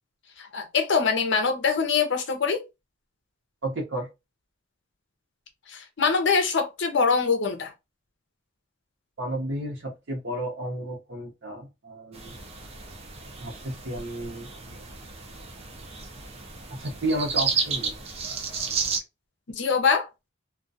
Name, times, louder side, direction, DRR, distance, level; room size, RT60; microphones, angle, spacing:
voice 1, 0.4-2.6 5.7-7.7 19.5-20.1, left 5 dB, 65° left, 0.6 m, -24 dB
voice 2, 3.6-4.1 9.2-12.3 13.4-14.8 16.7-17.9, right 1 dB, 65° right, 0.7 m, -32 dB
sound 1, 12.1-19.0, right 5 dB, 30° right, 0.4 m, -32 dB
2.3 x 2.2 x 2.5 m
head